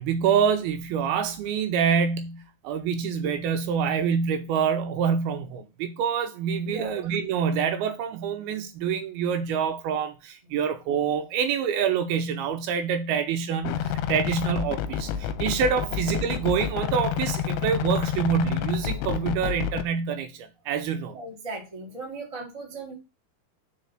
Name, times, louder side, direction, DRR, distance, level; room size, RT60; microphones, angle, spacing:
voice 1, 0.0-21.2, right 7 dB, 80° right, 2.4 m, -26 dB
voice 2, 6.7-7.0 21.1-22.9, right 3 dB, 35° right, 0.5 m, -37 dB
sound 1, 13.6-19.9, left 9 dB, 80° left, 2.4 m, -29 dB
5.3 x 4.9 x 5.9 m
omnidirectional pair, 4.7 m